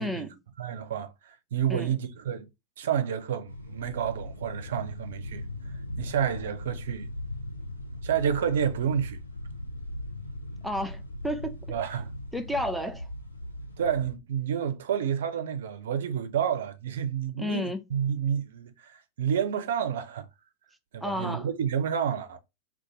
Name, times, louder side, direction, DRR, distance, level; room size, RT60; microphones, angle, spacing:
voice 1, 0.0-0.4 1.7-2.0 10.6-11.6 12.3-13.1 17.4-17.8 21.0-21.5, left 1 dB, ahead, 0.5 m, -32 dB
voice 2, 0.6-2.5 2.8-5.4 6.0-7.1 8.0-9.2 11.7-12.1 13.8-20.3 20.9-22.4, right 8 dB, 60° right, 0.5 m, -29 dB
sound 1, 3.5-14.2, left 1 dB, 85° left, 0.6 m, -39 dB
2.6 x 2.4 x 3.8 m
figure-of-eight pair, 90°, 0 cm